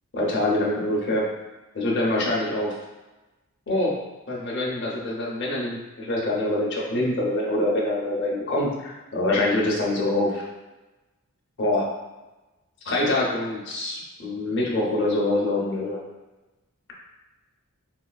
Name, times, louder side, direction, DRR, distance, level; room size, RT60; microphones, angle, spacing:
voice 1, 0.1-1.3 1.7-2.8 3.7-4.0 4.3-10.4 11.6-11.9 12.9-16.0, left 1 dB, 50° left, -3 dB, 0.7 m, -25 dB
4.3 x 2.3 x 2.3 m, 1.1 s
head